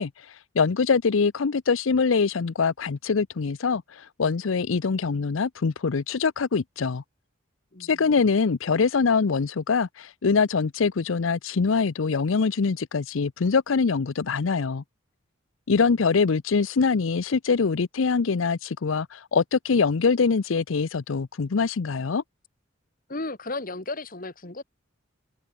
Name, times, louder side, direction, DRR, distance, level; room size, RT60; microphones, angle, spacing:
voice 1, 0.0-7.0 7.8-14.8 15.7-22.2, left 5 dB, 75° left, 0.6 m, -24 dB
voice 2, 7.7-8.0 23.1-24.6, left 2 dB, 45° left, 2.0 m, -35 dB
head